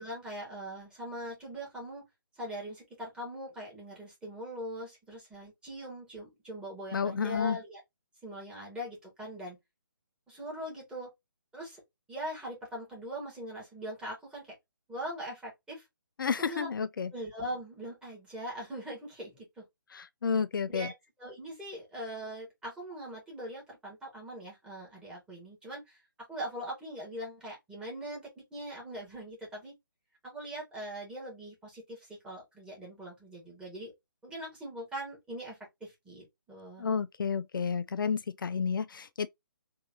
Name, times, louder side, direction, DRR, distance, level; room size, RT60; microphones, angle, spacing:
voice 1, 0.0-2.0 2.4-7.8 8.2-9.6 10.3-11.1 11.5-11.8 12.1-14.5 14.9-15.9 16.2-16.7 17.1-19.6 20.7-20.9 21.2-26.0 26.3-29.7 30.2-33.9 34.2-36.9, equal, 5° right, 2.1 m, -41 dB
voice 2, 6.9-7.6 16.2-17.1 19.9-20.9 36.8-39.3, left 6 dB, 70° left, 0.4 m, -31 dB
3.8 x 3.5 x 2.7 m
figure-of-eight pair, 145°, 12 cm